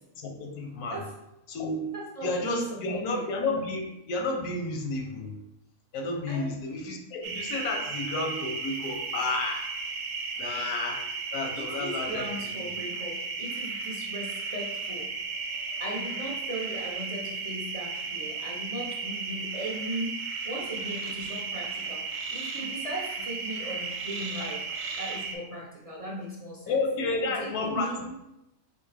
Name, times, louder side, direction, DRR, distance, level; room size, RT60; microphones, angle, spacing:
voice 1, 0.2-1.0 1.5-1.9 2.2-5.3 5.9-9.7 10.4-11.0 11.3-12.5 26.7-28.2, left 3 dB, 90° left, 2 dB, 1.2 m, -31 dB
voice 2, 1.9-3.3 6.3-6.6 11.6-15.1 15.8-24.7 25.0-26.8 27.4-28.1, right 1 dB, 45° right, -4 dB, 0.4 m, -38 dB
sound 1, 7.2-25.4, right 4 dB, 70° right, 0.9 m, -35 dB
4.4 x 2.8 x 3.2 m, 0.89 s
omnidirectional pair, 1.5 m